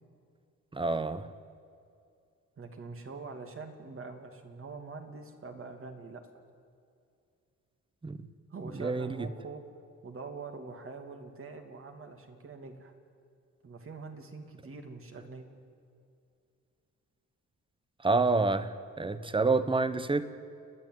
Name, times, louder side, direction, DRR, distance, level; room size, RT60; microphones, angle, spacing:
voice 1, 0.7-1.3 8.0-8.2 8.8-9.1 18.0-18.7 19.0-20.3, right 3 dB, 15° right, 13 dB, 1.0 m, -27 dB
voice 2, 2.6-6.3 8.5-9.6 10.0-12.9 13.6-15.5, right 4 dB, 45° right, 5 dB, 2.7 m, -44 dB
30.0 x 10.5 x 9.3 m, 2.4 s
cardioid pair, 100°, 30 cm